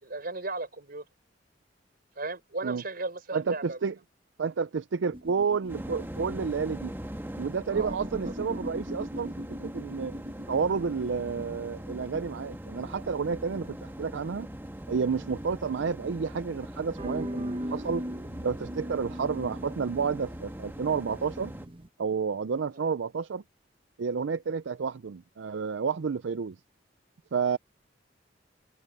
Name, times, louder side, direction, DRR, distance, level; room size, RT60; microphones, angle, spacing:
voice 1, 0.0-1.0 2.2-3.8 7.7-8.0, right 2 dB, 55° right, 4.5 m, -35 dB
voice 2, 3.3-3.9 4.4-6.9 7.4-9.3 9.6-10.1 10.5-14.5 14.9-18.0 18.4-21.5 22.0-23.4 24.0-26.6 27.3-27.6, right 5 dB, 75° right, 0.5 m, -30 dB
sound 1, 5.1-16.3 16.9-21.9, equal, 30° right, 1.2 m, -41 dB
sound 2, 5.7-21.7, equal, 10° right, 1.5 m, -42 dB
head